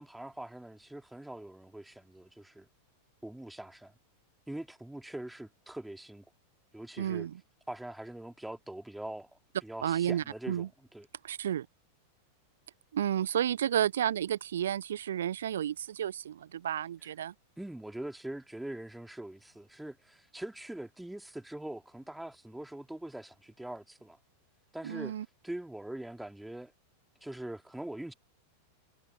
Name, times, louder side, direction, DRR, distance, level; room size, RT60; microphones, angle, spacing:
voice 1, 0.0-2.7 3.2-3.9 4.5-6.2 6.7-7.3 7.7-11.1 17.6-24.2 24.7-25.2 25.4-26.7 27.2-28.1, right 1 dB, 5° right, 3.4 m, -43 dB
voice 2, 7.0-7.4 9.8-10.7 11.2-11.7 12.9-17.3 24.8-25.3, right 10 dB, 65° right, 0.9 m, -31 dB
figure-of-eight pair, 90°, 0 cm